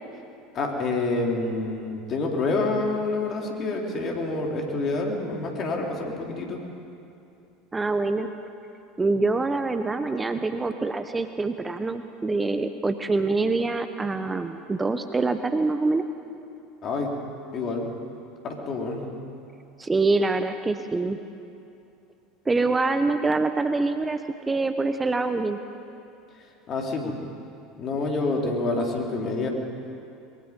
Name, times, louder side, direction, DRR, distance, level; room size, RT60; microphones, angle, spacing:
voice 1, 0.5-6.6 16.8-17.1 17.5-17.9 18.4-19.0 26.7-27.2 27.8-29.5, left 3 dB, 40° left, 0 dB, 3.9 m, -27 dB
voice 2, 7.7-8.3 9.0-16.0 19.8-21.2 22.5-24.2 24.5-25.6, right 3 dB, 15° right, 8 dB, 1.0 m, -25 dB
24.0 x 22.5 x 5.4 m, 2.7 s
figure-of-eight pair, 75°, 0 cm